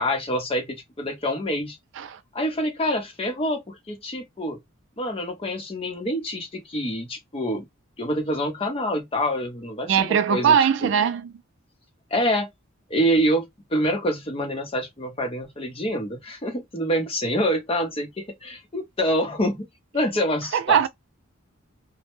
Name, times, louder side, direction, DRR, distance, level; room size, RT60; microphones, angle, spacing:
voice 1, 0.0-1.8 2.3-4.6 5.0-7.7 8.0-10.6 10.8-10.9 12.1-12.5 12.9-19.7 19.9-20.9, equal, 30° left, 0.7 m, -26 dB
voice 2, 9.9-11.3 20.5-20.9, right 8 dB, 60° right, 0.3 m, -20 dB
2.1 x 2.1 x 2.9 m
head